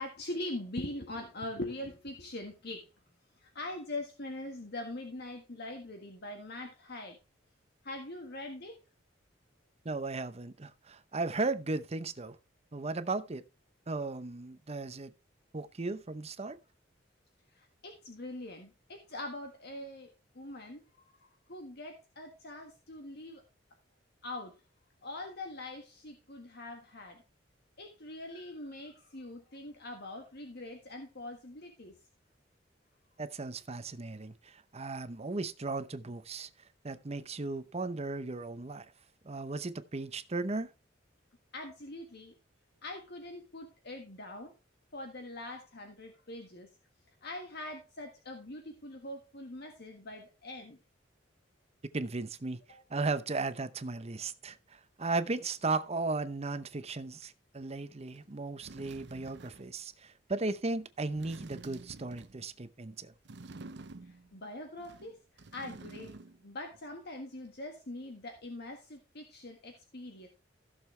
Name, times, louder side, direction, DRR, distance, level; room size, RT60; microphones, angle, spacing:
voice 1, 0.0-2.9 3.4-7.2 7.8-8.8 17.5-23.4 24.2-24.5 25.0-27.2 27.8-32.0 41.5-42.3 42.8-44.5 44.9-46.7 47.2-50.8 52.7-52.8 64.0-66.2 66.4-70.3, left 1 dB, 60° left, 1.6 m, -43 dB
voice 2, 9.8-12.4 12.7-13.4 13.9-15.1 15.5-16.6 33.2-36.5 36.8-38.9 39.2-40.7 51.9-52.6 52.9-63.1, right 3 dB, 35° right, 0.8 m, -36 dB
sound 1, 58.2-58.3 58.6-59.8 61.1-62.5 63.2-64.3 64.8-66.5 66.7-66.8, right 3 dB, 65° right, 0.8 m, -49 dB
15.5 x 6.8 x 3.3 m
head